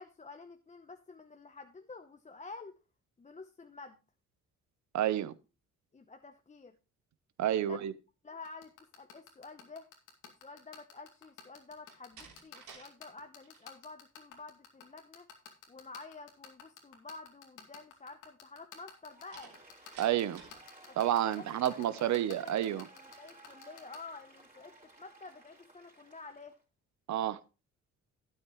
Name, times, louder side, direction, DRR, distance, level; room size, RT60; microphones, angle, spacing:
voice 1, 0.0-2.8 3.2-4.0 5.9-6.7 7.5-7.9 8.2-9.9 10.4-15.3 15.7-19.5 20.9-26.6, left 3 dB, 25° left, 0.8 m, -50 dB
voice 2, 4.9-5.3 7.4-7.9 20.0-20.4 21.0-22.8 27.1-27.4, right 11 dB, 65° right, 0.8 m, -30 dB
sound 1, 8.4-24.0, left 8 dB, 85° left, 2.4 m, -50 dB
Slam, 11.8-12.9 13.2-13.7 19.3-20.7, right 5 dB, 85° right, 3.6 m, -54 dB
Applause, 19.0-26.6, right 1 dB, 25° right, 4.1 m, -57 dB
12.5 x 9.1 x 3.1 m
cardioid pair, 90°, 30 cm